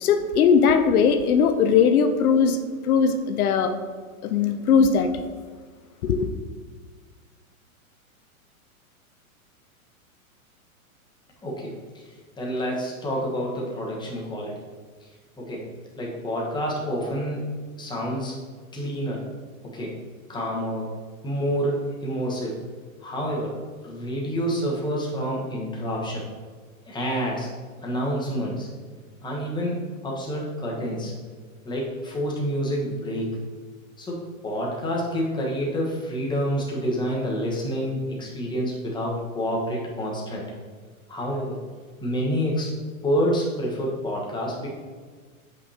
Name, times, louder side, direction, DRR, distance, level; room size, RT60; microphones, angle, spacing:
voice 1, 0.0-2.6 2.8-3.7 4.2-5.1 6.0-6.3, left 6 dB, 85° left, 8 dB, 0.7 m, -19 dB
voice 2, 11.4-11.7 12.4-14.6 15.4-15.7 16.0-17.5 17.8-18.4 18.7-19.2 19.7-20.0 20.3-20.9 21.2-22.6 23.0-23.6 23.8-26.2 26.9-27.5 27.8-28.7 29.2-31.1 31.6-33.4 34.0-40.4 41.1-41.6 42.0-42.7 43.0-44.7, equal, 10° left, -3 dB, 1.2 m, -28 dB
8.4 x 5.3 x 2.8 m, 1.5 s
hypercardioid pair, 130°, 42 cm